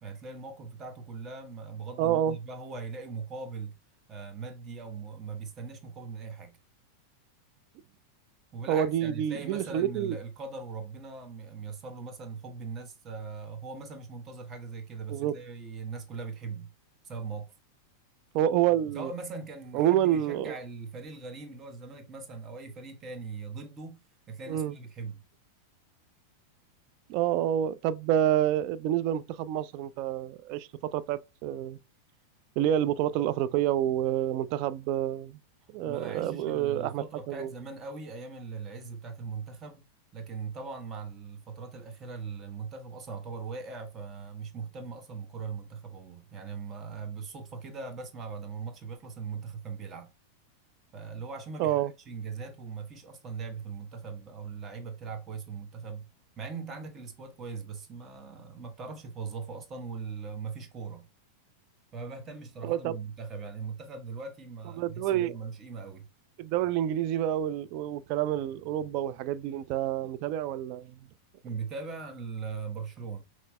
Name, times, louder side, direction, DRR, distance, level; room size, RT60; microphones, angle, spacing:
voice 1, 0.0-3.8 4.1-6.5 8.5-16.7 17.0-17.5 18.9-24.0 24.3-25.2 35.9-39.8 40.1-50.1 50.9-56.1 56.4-61.1 61.9-66.1 71.4-73.2, right 5 dB, 25° right, 1.1 m, -40 dB
voice 2, 2.0-2.4 8.7-10.2 15.1-15.3 18.3-19.1 19.7-20.5 24.5-24.8 27.1-31.8 32.6-35.4 35.7-37.5 51.6-51.9 62.6-62.9 64.8-65.3 66.4-71.0, right 11 dB, 45° right, 0.4 m, -28 dB
5.7 x 3.1 x 2.2 m
figure-of-eight pair, 90°, 0 cm